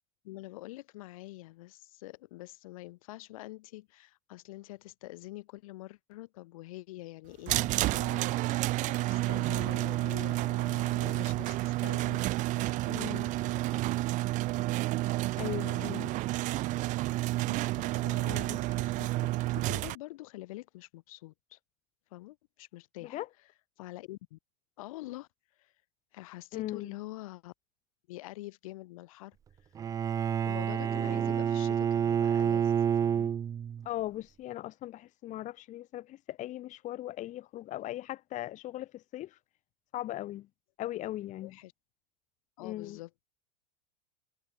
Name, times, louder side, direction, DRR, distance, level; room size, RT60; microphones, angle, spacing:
voice 1, 0.2-12.3 12.6-13.8 17.4-19.3 19.7-21.6 22.1-23.2 23.8-24.4 24.8-25.7 26.1-27.5 28.1-29.4 30.4-33.3 41.4-41.7 42.6-43.3, left 18 dB, 60° left, 2.4 m, -46 dB
sound 1, 7.5-19.9, right 18 dB, 40° right, 0.7 m, -30 dB
voice 2, 12.9-13.3 15.4-16.1 18.2-18.6 23.1-23.3 26.5-26.9 33.8-39.4 39.9-40.5 40.8-41.6 42.6-43.0, left 14 dB, 40° left, 1.7 m, -39 dB
Bowed string instrument, 29.8-33.9, right 8 dB, 20° right, 0.3 m, -28 dB
hypercardioid pair, 85°, 19 cm